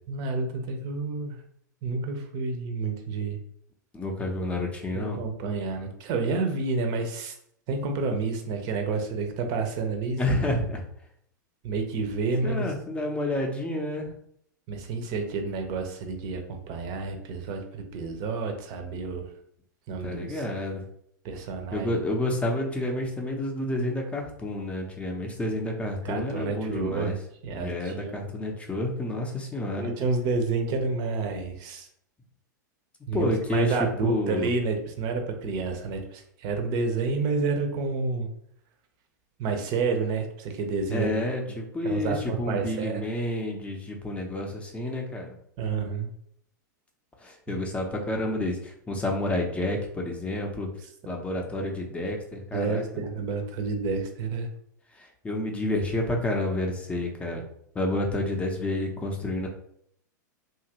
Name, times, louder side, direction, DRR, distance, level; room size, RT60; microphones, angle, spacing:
voice 1, 0.1-1.4 1.8-3.4 4.9-7.3 7.7-10.2 11.6-12.7 14.7-19.2 19.9-20.4 21.2-21.9 26.0-27.2 27.4-28.2 29.8-31.9 33.1-38.3 39.4-41.2 41.8-43.0 45.6-46.1 47.5-47.6 52.5-54.5, right 4 dB, 40° right, 5 dB, 0.7 m, -29 dB
voice 2, 3.9-5.2 10.2-10.8 12.4-14.1 20.0-20.8 21.7-27.2 27.5-29.9 33.1-34.5 40.9-45.4 47.2-50.7 51.1-52.8 54.9-57.4 57.7-59.5, left 1 dB, 10° left, 1 dB, 0.6 m, -29 dB
2.9 x 2.4 x 2.9 m, 0.68 s
hypercardioid pair, 100°, 10 cm